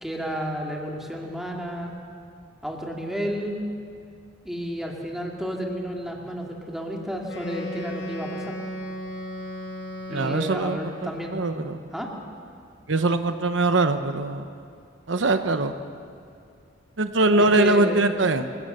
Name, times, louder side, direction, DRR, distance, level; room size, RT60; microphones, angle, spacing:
voice 1, 0.0-1.9 2.6-3.6 4.4-8.6 10.1-12.1 17.4-18.0, equal, ahead, -1 dB, 2.5 m, -31 dB
Wind instrument woodwind instrument, 7.2-11.3, equal, 80° left, 4.7 m, -35 dB
voice 2, 10.1-10.8 11.3-11.8 12.9-14.4 15.1-15.7 17.0-18.5, right 2 dB, 70° right, 8 dB, 0.9 m, -22 dB
26.0 x 17.5 x 6.7 m, 2.4 s
head